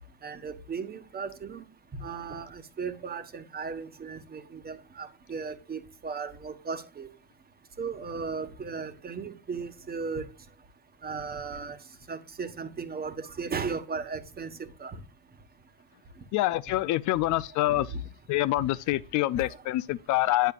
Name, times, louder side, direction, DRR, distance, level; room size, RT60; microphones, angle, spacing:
voice 1, 0.2-1.6 2.0-7.1 7.8-10.3 11.0-11.8 12.1-15.0 17.7-18.0 19.3-19.6, right 5 dB, 25° right, 1.3 m, -36 dB
voice 2, 16.3-17.9 18.3-20.5, left 16 dB, 55° left, 0.5 m, -26 dB
10.0 x 8.1 x 2.4 m
cardioid pair, 130°, 37 cm